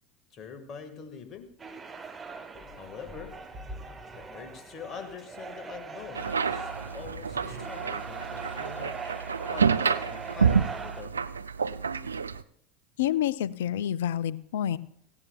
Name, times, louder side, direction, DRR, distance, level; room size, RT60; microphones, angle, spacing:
voice 1, 0.3-1.5 2.7-3.4 4.1-9.1 9.5-11.2, left 6 dB, 35° left, 8 dB, 1.7 m, -44 dB
sound 1, 1.4-1.5 2.0-7.6, equal, ahead, 5.4 m, -49 dB
sound 2, 1.6-11.0, right 5 dB, 20° right, 1.1 m, -41 dB
sound 3, 6.1-12.4, right 6 dB, 80° right, 0.3 m, -29 dB
voice 2, 13.0-14.8, left 11 dB, 65° left, 20 dB, 0.4 m, -28 dB
17.5 x 16.0 x 2.3 m, 0.69 s
figure-of-eight pair, 75°, 0 cm